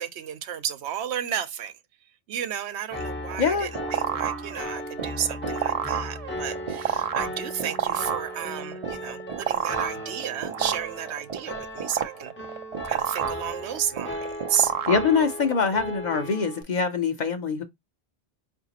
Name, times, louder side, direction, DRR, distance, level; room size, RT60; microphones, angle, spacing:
voice 1, 0.0-1.7 2.3-12.3 12.8-14.7, right 9 dB, 85° right, 0.9 m, -32 dB
Piano, 2.9-16.6, equal, 15° left, 0.5 m, -36 dB
sound 1, 3.3-15.7, right 8 dB, 55° right, 0.4 m, -30 dB
voice 2, 3.4-3.7 14.9-17.6, left 5 dB, 50° left, 0.7 m, -24 dB
4.8 x 2.5 x 2.8 m
omnidirectional pair, 1.1 m